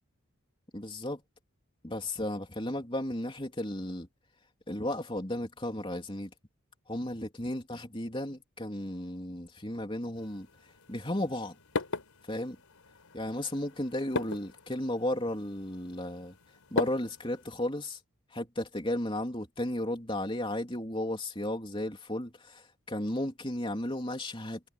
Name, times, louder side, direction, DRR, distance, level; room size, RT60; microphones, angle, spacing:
voice 1, 0.7-1.2 1.8-4.1 4.7-6.3 6.9-11.6 12.2-12.6 13.1-16.4 16.7-18.0 18.3-24.6, left 1 dB, 25° left, 3.6 m, -34 dB
sound 1, 10.2-17.5, left 3 dB, 90° left, 4.6 m, -39 dB
head